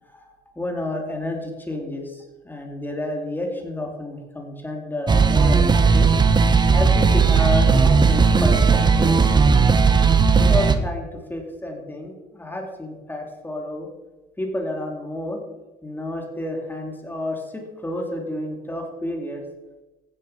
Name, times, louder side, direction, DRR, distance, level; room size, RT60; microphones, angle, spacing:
voice 1, 0.0-6.1 6.7-9.2 10.4-13.9 14.4-15.4 15.8-19.4, left 1 dB, 10° left, 2 dB, 2.9 m, -30 dB
sound 1, 5.1-10.8, right 5 dB, 25° right, 1.2 m, -16 dB
15.5 x 10.0 x 5.8 m, 1.1 s
cardioid pair, 110°, 17 cm